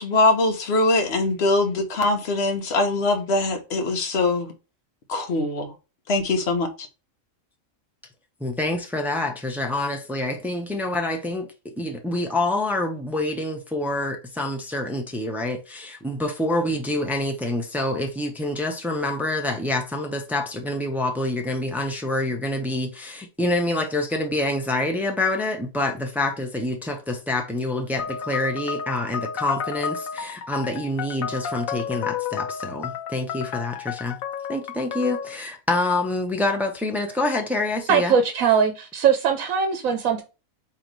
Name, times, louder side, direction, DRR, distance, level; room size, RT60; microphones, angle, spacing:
voice 1, 0.0-4.5 5.1-5.7 6.1-6.9, left 2 dB, 55° left, 1.2 m, -22 dB
voice 2, 8.4-34.2 34.5-38.1, left 2 dB, 5° right, 0.3 m, -26 dB
sound 1, 28.0-35.4, left 7 dB, 80° left, 1.1 m, -32 dB
voice 3, 37.9-40.2, right 7 dB, 80° right, 1.1 m, -20 dB
3.9 x 2.9 x 4.6 m
omnidirectional pair, 1.4 m